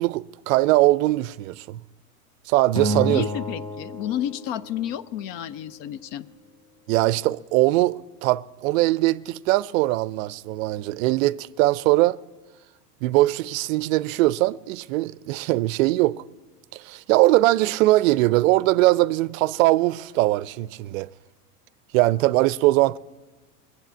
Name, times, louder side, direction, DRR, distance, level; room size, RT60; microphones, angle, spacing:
voice 1, 0.0-1.8 2.5-3.2 6.9-12.2 13.0-16.2 16.7-21.1 21.9-23.0, right 18 dB, 60° right, 0.5 m, -21 dB
Acoustic guitar, 2.8-5.1, equal, 10° left, 1.1 m, -30 dB
voice 2, 3.1-6.3, left 11 dB, 50° left, 0.6 m, -31 dB
20.0 x 8.1 x 8.1 m
hypercardioid pair, 100°, 48 cm